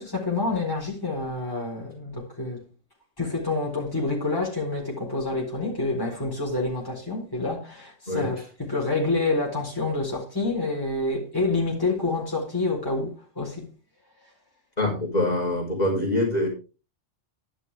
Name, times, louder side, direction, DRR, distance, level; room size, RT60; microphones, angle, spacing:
voice 1, 0.0-2.6 3.2-13.6, left 3 dB, 15° left, 4.4 m, -28 dB
voice 2, 14.8-16.5, left 1 dB, 30° left, 4.5 m, -24 dB
11.5 x 11.0 x 3.6 m
omnidirectional pair, 1.3 m